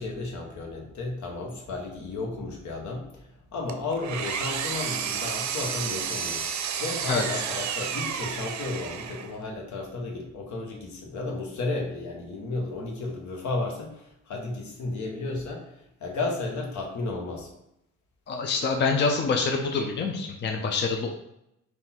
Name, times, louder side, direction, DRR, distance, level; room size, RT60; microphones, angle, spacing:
voice 1, 0.0-6.4 6.8-15.7 16.0-17.5, left 3 dB, 75° left, 1 dB, 1.1 m, -33 dB
Engine, 3.7-9.4, right 8 dB, 70° right, 0.5 m, -31 dB
voice 2, 18.3-21.1, left 4 dB, 40° left, 3 dB, 0.5 m, -26 dB
3.9 x 2.7 x 4.3 m, 0.82 s
cardioid pair, 110°, 29 cm